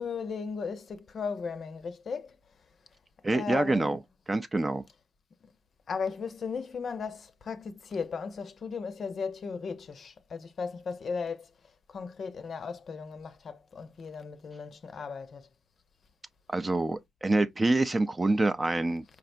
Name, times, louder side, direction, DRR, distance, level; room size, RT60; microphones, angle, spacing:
voice 1, 0.0-2.4 3.3-4.0 5.9-11.5 11.9-15.5, left 5 dB, 50° left, 0.6 m, -36 dB
voice 2, 3.2-4.0 4.3-4.8 16.5-19.0, right 2 dB, 20° right, 0.4 m, -26 dB
4.9 x 3.3 x 2.5 m
cardioid pair, 90°, 0 cm